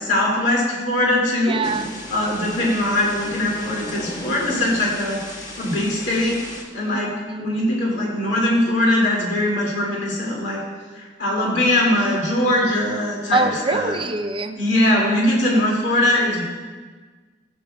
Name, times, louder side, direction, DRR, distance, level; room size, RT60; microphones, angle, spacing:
voice 1, 0.0-1.6 2.1-5.2 5.6-6.4 6.7-7.1 7.4-10.6 10.9-14.0 14.6-16.4, left 1 dB, 70° left, -4 dB, 2.4 m, -21 dB
voice 2, 1.4-2.0 6.9-7.6 13.3-14.6, right 3 dB, 30° right, 7 dB, 0.5 m, -25 dB
Thunder / Rain, 1.6-6.6, left 1 dB, 45° left, 1.5 m, -35 dB
15.0 x 8.7 x 2.3 m, 1.4 s
head